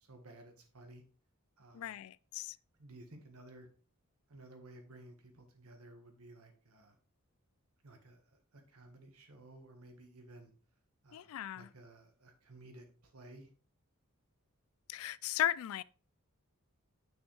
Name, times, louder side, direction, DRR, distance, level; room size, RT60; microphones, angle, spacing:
voice 1, 0.0-1.0 1.6-2.0 2.8-3.7 4.3-7.0 7.8-10.5 11.0-13.5, right 2 dB, 75° right, 1.5 m, -55 dB
voice 2, 1.7-2.6 11.1-11.7 14.9-15.8, left 12 dB, 65° left, 0.3 m, -36 dB
6.4 x 6.1 x 3.3 m
head